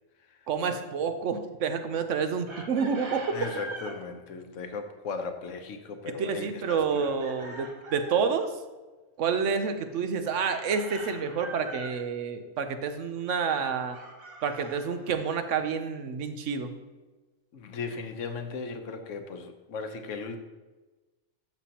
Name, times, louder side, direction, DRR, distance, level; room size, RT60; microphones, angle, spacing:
voice 1, 0.5-3.4 6.2-8.5 9.2-14.0 14.4-16.7, right 6 dB, 75° right, 8 dB, 1.1 m, -29 dB
Chicken rooster, 2.5-4.0 7.0-8.3 10.4-12.0 13.9-15.5, right 2 dB, 45° right, 1.6 m, -42 dB
voice 2, 3.3-7.1 17.5-20.4, left 4 dB, 80° left, 6 dB, 1.2 m, -37 dB
12.0 x 7.2 x 2.9 m, 1.2 s
omnidirectional pair, 1.3 m